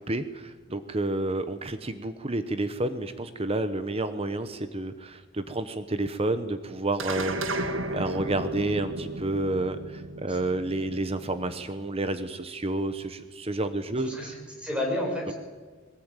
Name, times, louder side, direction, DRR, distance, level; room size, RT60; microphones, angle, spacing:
voice 1, 0.0-14.3, right 2 dB, 30° right, 10 dB, 1.0 m, -30 dB
sound 1, 7.0-11.6, right 2 dB, 75° right, 1.9 m, -34 dB
voice 2, 14.0-15.3, left 1 dB, 5° right, -1 dB, 6.8 m, -31 dB
21.5 x 18.5 x 9.1 m, 1.4 s
head